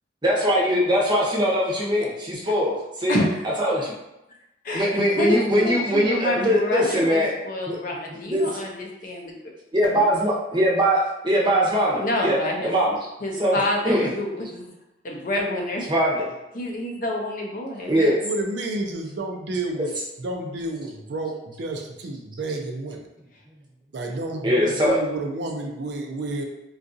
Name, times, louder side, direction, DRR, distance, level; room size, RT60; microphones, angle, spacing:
voice 1, 0.2-3.2 3.6-3.9 4.7-7.3 7.7-7.8 8.3-8.7 9.7-13.0 13.4-14.1 15.9-16.2 17.9-18.2 24.4-25.0, equal, 25° right, -4 dB, 0.7 m, -21 dB
voice 2, 5.2-9.4 9.9-10.1 12.0-12.7 13.2-14.7 15.0-15.8 16.5-18.2, left 1 dB, 45° left, 0 dB, 0.5 m, -28 dB
voice 3, 18.2-19.9 20.2-23.0 23.9-26.4, right 2 dB, 55° right, 2 dB, 0.4 m, -30 dB
3.8 x 2.4 x 2.6 m, 0.92 s
head